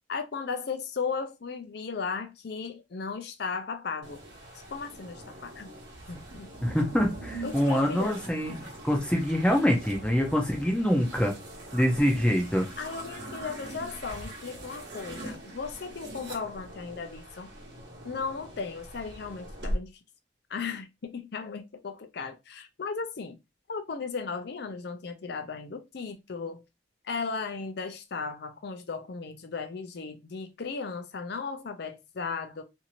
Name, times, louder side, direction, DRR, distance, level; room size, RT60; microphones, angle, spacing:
voice 1, 0.1-4.2 4.7-5.7 6.1-6.5 7.4-8.2 12.8-17.5 18.0-19.9 20.5-23.4 23.7-26.6 27.0-32.6, left 5 dB, 55° left, 0.5 m, -36 dB
sound 1, 4.0-19.8, right 1 dB, 60° right, 1.0 m, -42 dB
voice 2, 6.6-11.3 11.7-12.7, equal, 5° left, 0.5 m, -25 dB
2.6 x 2.5 x 2.8 m
head